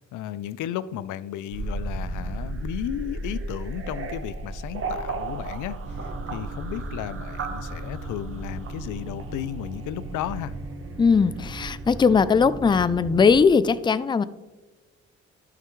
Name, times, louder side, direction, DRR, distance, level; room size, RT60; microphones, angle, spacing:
voice 1, 0.1-10.5, left 11 dB, 80° left, 16 dB, 0.5 m, -34 dB
sound 1, 1.5-11.5, right 2 dB, 45° right, 1.0 m, -35 dB
sound 2, 5.8-13.5, right 2 dB, 75° right, 2.7 m, -38 dB
voice 2, 11.0-14.2, left 5 dB, 15° left, 16 dB, 0.3 m, -19 dB
12.5 x 5.9 x 3.1 m, 1.2 s
cardioid pair, 90°, 30 cm